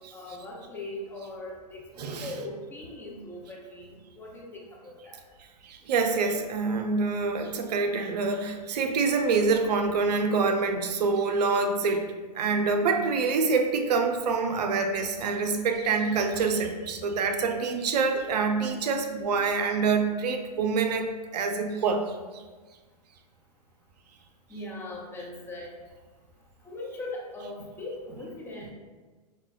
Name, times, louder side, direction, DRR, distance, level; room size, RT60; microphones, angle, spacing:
voice 1, 0.0-5.2 24.5-25.7 26.6-28.7, left 2 dB, 10° left, -3 dB, 0.5 m, -40 dB
voice 2, 2.0-2.3 5.6-21.1 21.3-22.4, right 4 dB, 75° right, 5 dB, 0.5 m, -26 dB
6.3 x 2.2 x 2.3 m, 1.3 s
hypercardioid pair, 130°, 21 cm